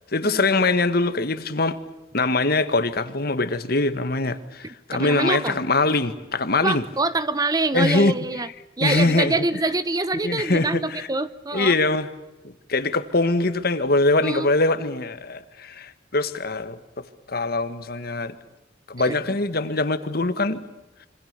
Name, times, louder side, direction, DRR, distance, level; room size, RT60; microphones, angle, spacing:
voice 1, 0.1-1.8 2.1-6.8 7.7-8.1 8.8-9.3 10.2-11.1 11.5-12.1 12.4-18.3 18.9-20.7, left 2 dB, 55° left, 1.7 m, -23 dB
voice 2, 4.9-5.6 6.6-8.5 8.8-11.8 14.2-14.5 19.0-19.3, right 2 dB, 20° right, 0.9 m, -25 dB
26.5 x 25.5 x 6.8 m
head